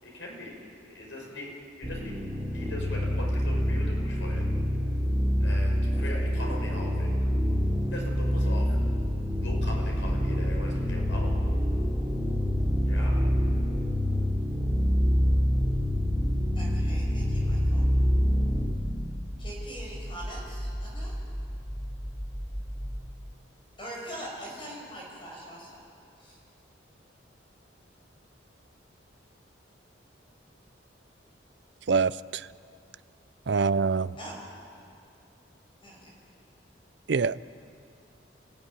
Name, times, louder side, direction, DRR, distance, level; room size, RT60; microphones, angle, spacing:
voice 1, 0.0-4.4 5.4-7.1 7.9-8.8 9.4-11.3 12.8-13.3, left 1 dB, 85° left, -1 dB, 6.0 m, -40 dB
sound 1, 1.8-18.7, equal, 10° right, 2.9 m, -26 dB
sound 2, 10.5-23.1, equal, 10° left, 1.5 m, -35 dB
voice 2, 16.5-17.9 19.4-21.1 23.8-25.8 26.2-26.4 34.2-34.4 35.8-36.1, right 1 dB, 25° left, -3 dB, 5.9 m, -42 dB
voice 3, 31.9-32.4 33.5-34.1 37.1-37.4, right 5 dB, 65° right, 17 dB, 0.5 m, -24 dB
28.5 x 16.5 x 9.5 m, 2.4 s
head